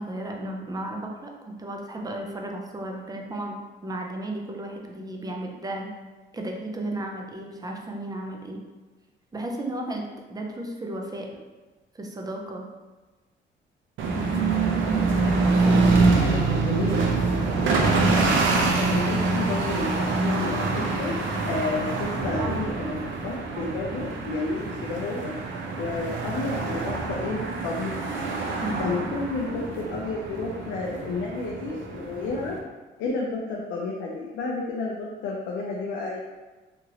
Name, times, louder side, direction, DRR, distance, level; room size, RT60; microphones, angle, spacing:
voice 1, 0.0-3.6 3.8-5.9 6.3-8.6 9.3-11.3 11.9-12.7 14.1-14.5 14.8-16.3 28.6-29.0, right 1 dB, 20° right, 1 dB, 0.5 m, -34 dB
sound 1, 14.0-32.6, right 3 dB, 75° right, 0.5 m, -25 dB
voice 2, 16.2-17.0 18.8-21.1 21.4-25.3 25.8-28.1 28.8-32.6 33.0-36.2, left 3 dB, 90° left, -3 dB, 0.5 m, -31 dB
2.9 x 2.6 x 2.8 m, 1.2 s
cardioid pair, 90°, 20 cm